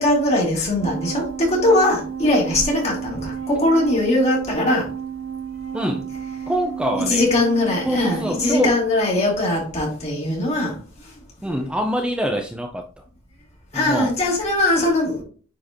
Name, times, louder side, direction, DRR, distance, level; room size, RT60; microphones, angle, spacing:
voice 1, 0.0-4.9 7.1-10.8 13.7-15.2, left 1 dB, 35° left, -3 dB, 3.1 m, -20 dB
sound 1, 0.8-8.7, right 7 dB, 75° right, 0.9 m, -32 dB
voice 2, 5.7-6.1 6.5-7.3 7.8-8.8 11.4-12.8 13.7-14.1, equal, 5° right, 3 dB, 0.6 m, -25 dB
9.5 x 4.5 x 3.0 m, 0.40 s
head